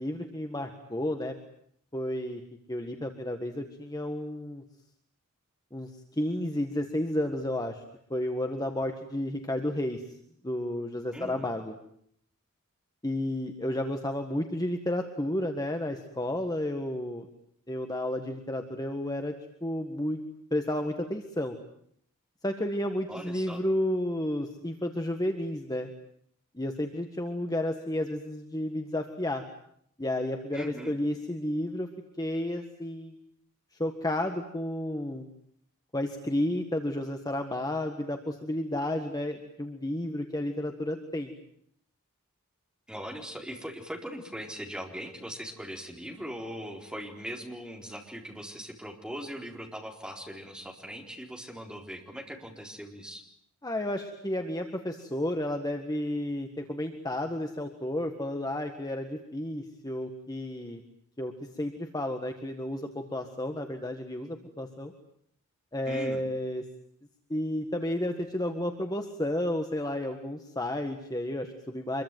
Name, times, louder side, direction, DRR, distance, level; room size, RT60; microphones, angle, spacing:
voice 1, 0.0-1.3 1.9-2.4 2.7-4.6 5.7-5.9 6.2-7.8 8.1-10.0 10.4-11.7 13.0-17.3 17.7-19.3 19.6-20.2 20.5-21.5 22.4-25.9 26.5-29.4 30.0-31.9 32.2-33.1 33.8-35.3 35.9-41.3 53.6-60.8 61.2-64.9 65.7-66.6 67.3-72.0, left 1 dB, 15° left, 5 dB, 1.7 m, -32 dB
voice 2, 11.1-11.5 23.1-23.6 30.5-30.9 42.9-53.3 65.9-66.2, equal, 5° right, 1 dB, 4.2 m, -40 dB
26.0 x 22.5 x 9.3 m, 0.68 s
head